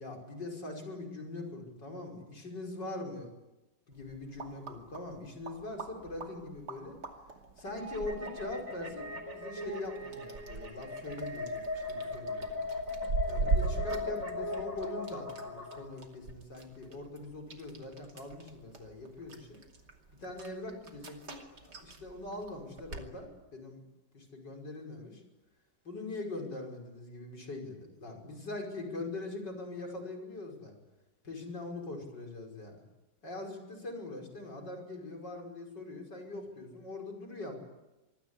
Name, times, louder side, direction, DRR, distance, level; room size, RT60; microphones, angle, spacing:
voice 1, 0.0-3.3 3.9-7.0 7.6-9.1 9.3-12.5 13.3-19.6 20.2-23.8 24.1-25.2 25.8-30.7 31.2-32.8 33.2-37.6, left 2 dB, 85° left, 2 dB, 6.2 m, -42 dB
sound 1, 3.9-23.1, right 3 dB, 70° right, 3.3 m, -41 dB
sound 2, 7.7-15.8, left 2 dB, 50° right, 4.2 m, -38 dB
26.0 x 21.0 x 9.9 m, 1.0 s
omnidirectional pair, 1.8 m